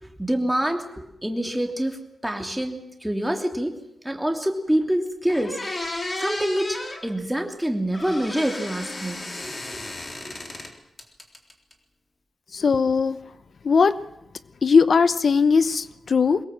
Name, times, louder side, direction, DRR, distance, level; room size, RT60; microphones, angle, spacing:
voice 1, 0.0-3.7 4.0-5.6 6.2-9.8 10.3-10.4, right 1 dB, 5° right, 3 dB, 3.0 m, -26 dB
sound 1, 4.8-4.9 5.3-7.0 7.9-10.7 11.0-11.7, left 2 dB, 30° left, 3.8 m, -33 dB
voice 2, 12.5-13.2 13.6-14.0 14.6-16.4, left 5 dB, 55° left, 14 dB, 0.8 m, -19 dB
23.0 x 21.5 x 7.7 m, 0.86 s
wide cardioid pair, 125°, 0 cm